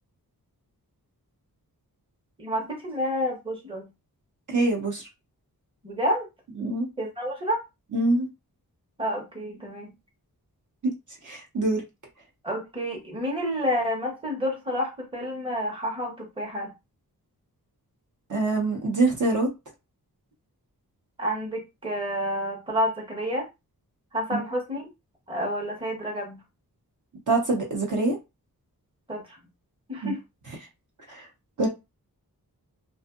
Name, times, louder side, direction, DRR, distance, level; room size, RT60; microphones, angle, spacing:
voice 1, 2.4-3.9 5.8-6.3 7.0-7.6 9.0-9.9 12.4-16.7 21.2-23.5 24.1-24.8 25.3-26.4 29.1-29.4 29.9-30.2, equal, 15° right, 0.9 m, -29 dB
voice 2, 4.5-5.1 6.6-6.9 7.9-8.3 10.8-10.9 11.2-11.8 18.3-19.5 24.3-24.4 27.3-28.2 30.0-30.1 31.1-31.3 31.6-31.7, right 2 dB, 55° right, 0.9 m, -24 dB
2.6 x 2.4 x 2.4 m
wide cardioid pair, 120°, 37 cm